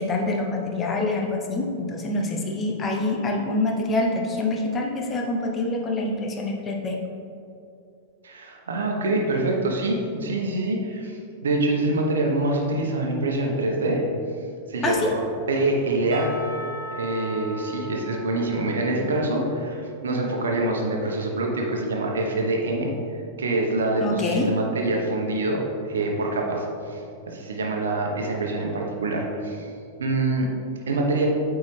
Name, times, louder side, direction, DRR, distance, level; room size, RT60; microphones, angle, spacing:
voice 1, 0.0-7.0 14.8-15.1 24.0-24.5, left 2 dB, 25° left, 1 dB, 0.9 m, -26 dB
voice 2, 8.2-14.0 14.7-16.3 17.0-22.9 23.4-29.7 30.0-30.5 30.9-31.3, right 2 dB, 70° right, 0 dB, 1.0 m, -25 dB
Percussion / Church bell, 16.1-20.1, right 1 dB, 25° right, 1.5 m, -39 dB
8.3 x 4.7 x 3.3 m, 2.6 s
figure-of-eight pair, 95°, 0 cm